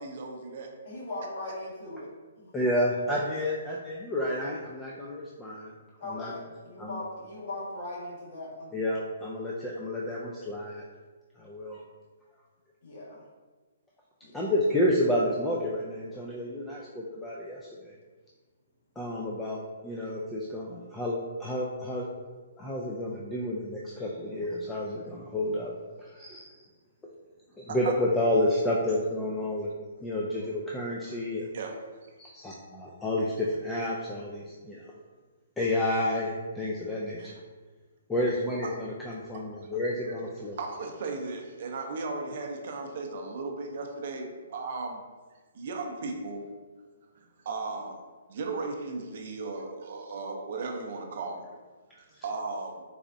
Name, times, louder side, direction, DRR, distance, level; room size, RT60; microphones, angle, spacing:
voice 1, 0.0-0.7 27.7-27.9 31.5-31.7 32.0-32.1 37.2-37.4 40.5-45.0 45.5-46.4 47.4-48.0 48.3-51.5 51.9-52.8, right 3 dB, 55° right, 2 dB, 0.5 m, -36 dB
voice 2, 0.8-2.1 2.4-2.5 6.0-8.7 12.8-13.2 14.2-14.4 26.4-26.7, left 2 dB, 50° left, -6 dB, 1.4 m, -39 dB
voice 3, 2.5-5.7 6.0-6.4 6.8-7.0 8.7-10.9 11.4-11.8 14.3-17.9 19.0-22.1 22.6-25.7 26.0-26.5 27.6-29.7 30.0-31.5 32.2-34.8 35.6-37.3 38.1-40.6, left 1 dB, 10° left, -4 dB, 0.3 m, -30 dB
4.1 x 2.4 x 2.5 m, 1.3 s
hypercardioid pair, 150°, 0 cm